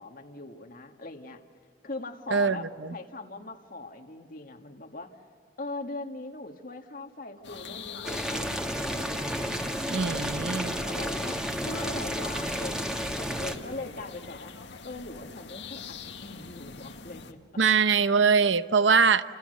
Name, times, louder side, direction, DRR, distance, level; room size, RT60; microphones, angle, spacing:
voice 1, 0.0-1.4 1.8-5.2 5.6-8.9 10.7-14.5 14.8-17.4, left 2 dB, 50° left, 4 dB, 1.8 m, -40 dB
voice 2, 2.3-2.9 9.9-10.7 17.6-19.2, right 5 dB, 80° right, 13 dB, 0.9 m, -23 dB
sound 1, 7.4-17.3, left 4 dB, 70° left, 1.8 m, -44 dB
Boiling, 8.0-13.6, equal, 5° right, 1.9 m, -31 dB
30.0 x 29.0 x 6.7 m, 2.1 s
head